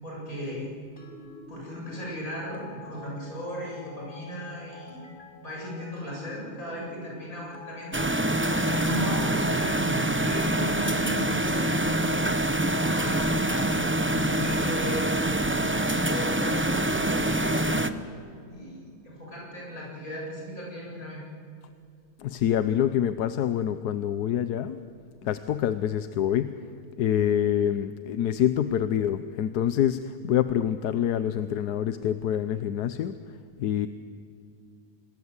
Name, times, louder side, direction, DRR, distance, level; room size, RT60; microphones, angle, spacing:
voice 1, 0.0-0.7 1.5-5.0 5.4-8.1 8.5-12.2 12.6-15.0 15.5-17.9 18.5-21.2, equal, 65° left, -3 dB, 8.5 m, -36 dB
sound 1, 1.0-10.3, left 3 dB, 35° left, 3.6 m, -48 dB
sound 2, 7.9-17.9, right 1 dB, 15° right, 0.5 m, -25 dB
voice 2, 22.2-24.8 25.2-26.5 27.0-33.2 33.6-33.9, left 10 dB, 90° left, 11 dB, 1.3 m, -26 dB
27.5 x 21.0 x 8.2 m, 2.4 s
omnidirectional pair, 1.6 m